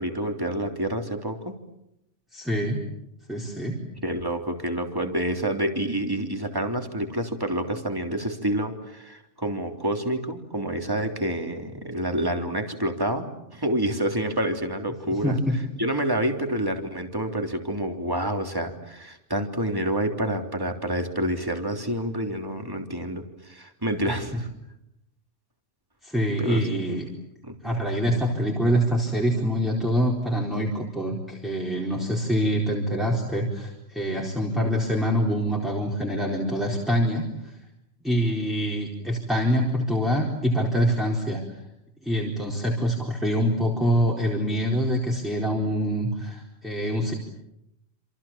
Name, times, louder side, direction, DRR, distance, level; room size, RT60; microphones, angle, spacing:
voice 1, 0.0-1.5 4.0-13.3 13.5-24.5 26.4-27.0 27.4-27.8, right 1 dB, 20° right, 4 dB, 3.4 m, -28 dB
voice 2, 2.3-2.8 3.3-3.8 15.1-15.6 24.0-24.1 26.0-27.0 27.6-37.5 38.0-41.4 42.0-47.1, equal, ahead, -1 dB, 4.3 m, -25 dB
28.0 x 28.0 x 7.5 m, 0.82 s
omnidirectional pair, 1.2 m